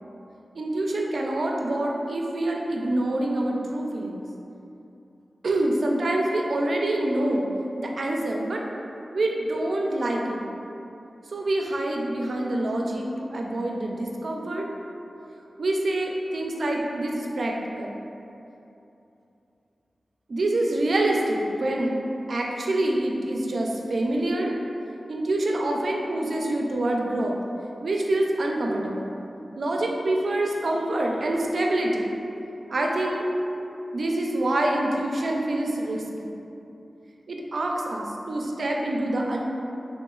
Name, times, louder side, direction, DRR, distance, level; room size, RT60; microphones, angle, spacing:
voice 1, 0.6-4.2 5.4-7.5 7.8-8.6 9.1-10.4 11.3-14.7 15.6-18.0 20.3-22.0 22.3-24.6 25.1-27.3 27.8-29.1 29.6-32.1 32.7-33.3 33.9-36.0 37.3-39.4, right 1 dB, 65° right, 0 dB, 0.4 m, -26 dB
3.5 x 2.9 x 3.7 m, 2.9 s
wide cardioid pair, 70°, 0 cm